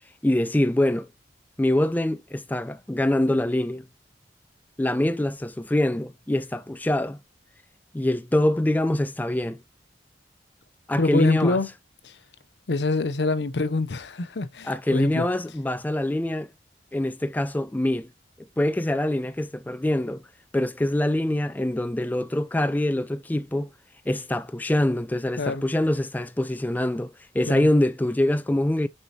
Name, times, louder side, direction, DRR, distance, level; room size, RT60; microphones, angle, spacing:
voice 1, 0.2-1.1 1.6-3.8 4.8-7.2 7.9-9.6 10.9-11.6 14.6-16.5 16.9-18.1 18.6-20.2 20.5-23.7 24.1-28.9, left 1 dB, 10° left, 0.4 m, -24 dB
voice 2, 11.0-11.7 12.0-12.2 12.7-15.3 25.4-25.7 27.5-27.7, left 3 dB, 75° left, 0.7 m, -25 dB
6.4 x 5.4 x 2.9 m
head